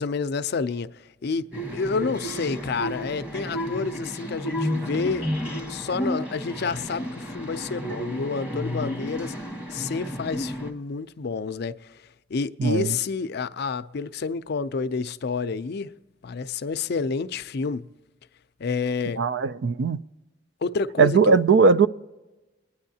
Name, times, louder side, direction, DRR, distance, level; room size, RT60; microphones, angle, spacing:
voice 1, 0.0-5.3 5.7-12.0 12.3-15.9 16.2-17.9 18.6-19.2 20.6-21.4, left 4 dB, 60° left, 0.5 m, -29 dB
sound 1, 1.5-10.7, equal, 5° right, 1.3 m, -32 dB
voice 2, 12.6-13.0 19.2-20.0 21.0-21.9, right 5 dB, 65° right, 0.4 m, -19 dB
22.5 x 9.7 x 2.8 m
head